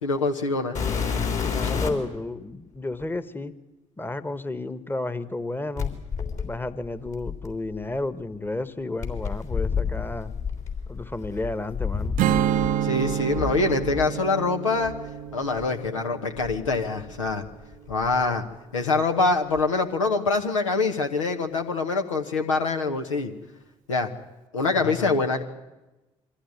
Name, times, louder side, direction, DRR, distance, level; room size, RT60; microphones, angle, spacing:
voice 1, 0.0-0.8 12.8-14.9 15.3-17.4 17.9-18.4 18.7-23.3 23.9-24.1 24.5-25.4, left 3 dB, 85° left, 4 dB, 1.1 m, -24 dB
sound 1, 0.7-2.1 3.0-3.1 5.8-7.8 9.0-12.7 13.0-14.1 14.8-15.0 15.6-15.7 16.4-17.5 17.7-18.2 19.6-19.7, left 6 dB, 50° left, 3.7 m, -30 dB
voice 2, 1.5-3.5 4.0-5.9 6.4-10.3 10.9-12.2 24.7-25.1, left 2 dB, 15° left, 13 dB, 1.3 m, -32 dB
Strum, 12.2-17.5, right 10 dB, 60° right, 0.6 m, -28 dB
22.5 x 14.5 x 9.5 m, 1.1 s
figure-of-eight pair, 45°, 16 cm